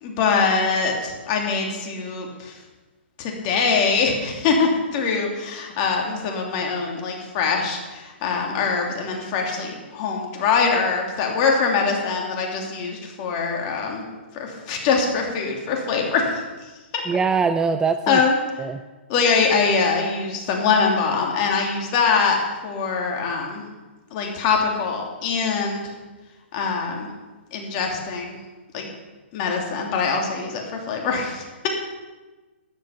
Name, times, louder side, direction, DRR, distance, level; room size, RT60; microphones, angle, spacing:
voice 1, 0.0-2.6 3.2-14.0 14.3-16.4 16.9-17.0 18.1-18.4 19.1-23.6 24.1-25.9 26.5-27.1 27.5-28.4 28.7-28.9 29.3-31.7, left 5 dB, 40° left, 1 dB, 3.0 m, -23 dB
voice 2, 17.1-18.2 18.6-18.8, right 5 dB, 10° right, 10 dB, 0.4 m, -22 dB
13.5 x 9.8 x 5.8 m, 1.2 s
hypercardioid pair, 135°, 6 cm